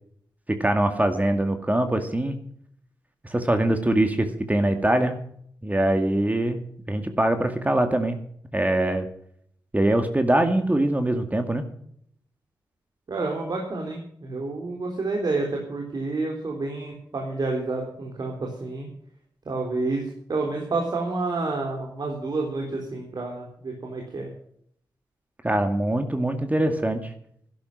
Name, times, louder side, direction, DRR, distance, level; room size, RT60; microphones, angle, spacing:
voice 1, 0.5-2.4 3.3-5.2 5.6-8.2 8.5-9.1 9.7-11.6 25.4-27.1, right 1 dB, 20° right, 7 dB, 2.1 m, -23 dB
voice 2, 13.1-18.9 19.5-20.0 20.3-24.3, right 3 dB, 60° right, 1 dB, 3.8 m, -29 dB
12.5 x 11.5 x 6.0 m, 0.66 s
cardioid pair, 65°, 8 cm